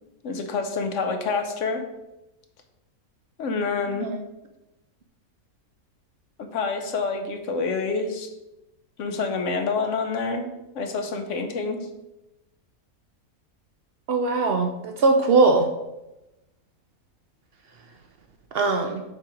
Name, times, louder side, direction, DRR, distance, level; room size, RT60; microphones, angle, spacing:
voice 1, 0.2-1.8 3.4-4.1 6.4-8.3 9.0-10.5 10.7-11.9, left 4 dB, 65° left, 5 dB, 0.9 m, -27 dB
voice 2, 14.1-15.7 18.5-19.0, right 3 dB, 75° right, 4 dB, 0.5 m, -20 dB
6.7 x 2.9 x 4.8 m, 0.94 s
omnidirectional pair, 1.6 m